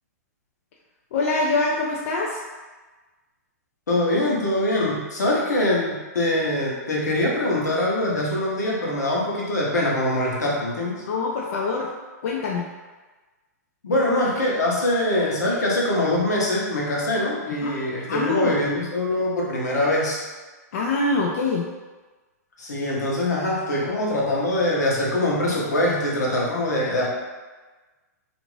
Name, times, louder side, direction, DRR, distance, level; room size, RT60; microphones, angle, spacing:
voice 1, 1.1-2.4 11.1-11.9 12.2-12.7 17.6-17.7 18.1-18.5 20.7-21.7, left 3 dB, 60° left, -2 dB, 0.4 m, -24 dB
voice 2, 3.9-11.0 13.8-20.2 22.6-27.1, left 1 dB, 85° left, -4 dB, 0.9 m, -23 dB
2.5 x 2.4 x 3.2 m, 1.3 s
hypercardioid pair, 125°, 9 cm